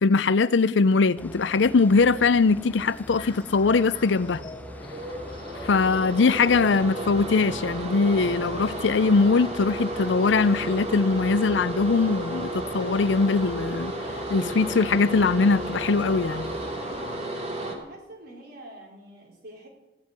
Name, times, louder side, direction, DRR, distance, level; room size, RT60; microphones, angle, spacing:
voice 1, 0.0-4.4 5.6-13.9 14.3-16.5, left 4 dB, 70° left, 0.5 m, -21 dB
sound 1, 1.2-17.2, left 1 dB, 10° left, 0.6 m, -43 dB
sound 2, 2.7-10.9, left 4 dB, 30° left, 2.3 m, -49 dB
sound 3, 4.1-17.7, right 1 dB, 35° right, 2.5 m, -33 dB
voice 2, 17.5-19.7, right 2 dB, 55° right, 4.5 m, -45 dB
15.5 x 7.6 x 9.6 m
head